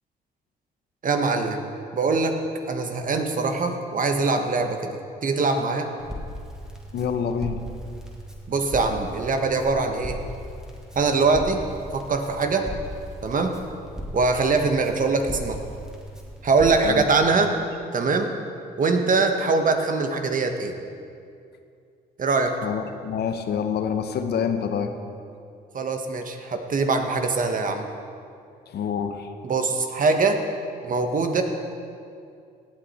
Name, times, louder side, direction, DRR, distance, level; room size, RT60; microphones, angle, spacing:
voice 1, 1.0-1.6 1.9-2.4 2.7-5.9 8.5-10.2 10.9-11.6 11.9-12.7 13.2-13.5 14.1-15.6 16.4-17.5 17.9-18.3 18.8-20.7 22.2-22.6 25.7-27.9 29.4-30.4 30.8-31.4, right 4 dB, 50° right, 5 dB, 1.3 m, -23 dB
Crackle, 6.0-16.9, equal, 5° right, 2.2 m, -38 dB
voice 2, 6.9-7.6 16.8-17.1 22.6-24.9 28.7-29.3, left 7 dB, 70° left, 8 dB, 0.9 m, -27 dB
17.0 x 8.3 x 4.3 m, 2.4 s
supercardioid pair, 65°, 18 cm